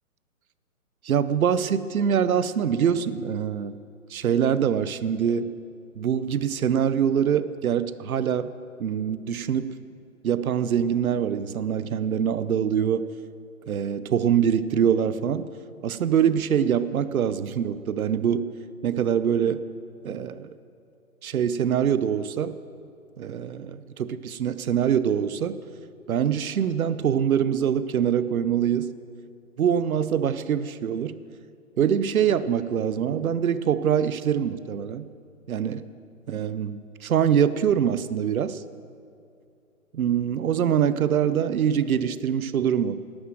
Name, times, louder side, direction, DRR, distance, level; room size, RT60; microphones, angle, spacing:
voice 1, 1.0-3.7 4.1-5.5 6.0-8.5 8.8-9.7 10.2-13.1 13.7-15.5 15.8-18.5 18.8-19.6 20.0-20.5 21.2-22.5 23.2-25.6 26.1-28.9 29.6-31.2 31.8-35.1 35.5-35.8 36.3-38.6 39.9-43.0, right 8 dB, 70° right, 14 dB, 0.8 m, -24 dB
12.5 x 9.7 x 7.7 m, 2.5 s
hypercardioid pair, 160°, 44 cm